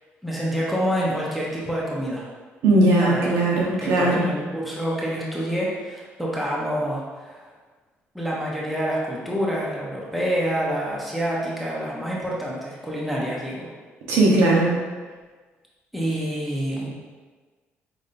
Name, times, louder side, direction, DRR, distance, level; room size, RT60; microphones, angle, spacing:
voice 1, 0.2-2.2 3.0-3.4 3.7-7.5 8.1-13.7 15.9-16.9, equal, ahead, -5 dB, 0.9 m, -27 dB
voice 2, 2.6-4.2 14.1-14.7, right 2 dB, 90° right, -4 dB, 1.0 m, -18 dB
5.5 x 3.4 x 2.6 m, 1.4 s
cardioid pair, 105°, 5 cm